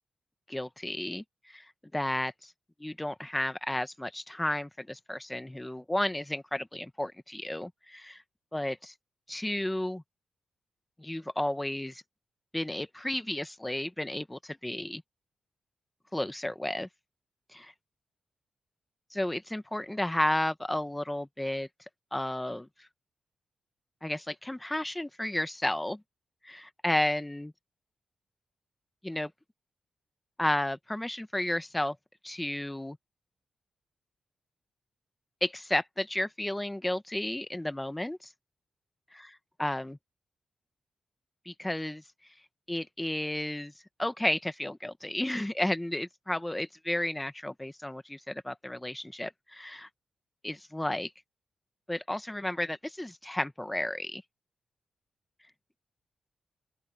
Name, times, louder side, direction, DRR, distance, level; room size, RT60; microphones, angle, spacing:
voice 1, 0.5-1.7 1.9-2.5 2.8-8.2 8.5-8.9 9.3-10.0 11.0-12.0 12.5-15.0 16.1-16.9 17.5-17.7 19.1-21.7 22.1-22.7 24.0-26.0 26.4-27.5 29.0-29.3 30.4-32.0 32.2-33.0 35.4-38.3 39.6-40.0 41.5-42.0 42.7-43.7 44.0-49.9 50.4-51.1 51.9-54.2, left 1 dB, 5° left, 0.9 m, -32 dB
open air
wide cardioid pair, 170°, 0 cm